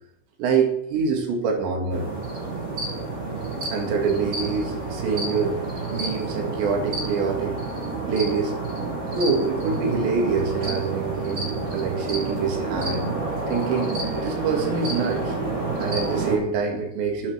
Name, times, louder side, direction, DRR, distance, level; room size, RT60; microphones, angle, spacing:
voice 1, 0.4-2.1 3.7-5.6 5.9-7.6 8.1-8.5 9.1-13.1 13.5-15.4 15.8-17.3, right 5 dB, 65° right, 2 dB, 4.1 m, -25 dB
sound 1, 1.9-16.4, right 3 dB, 20° right, 4.4 m, -29 dB
10.5 x 8.8 x 7.7 m, 0.78 s
omnidirectional pair, 5.9 m